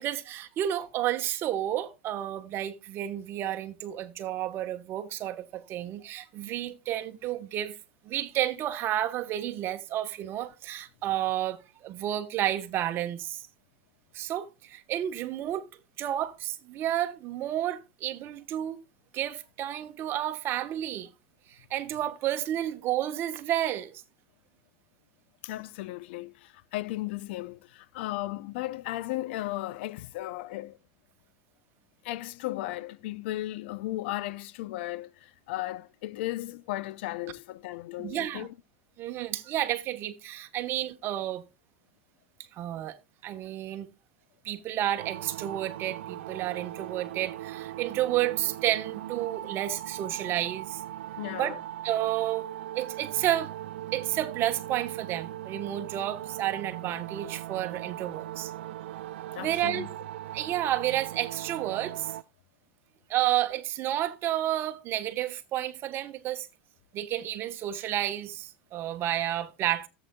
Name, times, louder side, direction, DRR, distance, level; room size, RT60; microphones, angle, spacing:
voice 1, 0.0-7.8 8.0-13.4 14.1-15.7 16.0-18.8 19.1-21.1 21.5-24.0 38.0-38.5 39.0-41.4 42.6-43.0 43.2-43.9 44.4-50.8 51.4-51.5 51.8-52.5 52.7-53.5 53.9-58.5 59.4-59.9 60.3-62.1 63.1-66.5 66.9-69.9, right 12 dB, 40° right, 1.1 m, -31 dB
voice 2, 25.4-30.8 32.0-38.5 51.2-51.6 59.3-59.9, left 16 dB, 70° left, 0.5 m, -35 dB
sound 1, 45.0-62.2, right 13 dB, 80° right, 0.4 m, -39 dB
14.0 x 7.8 x 2.2 m
supercardioid pair, 125°, 6 cm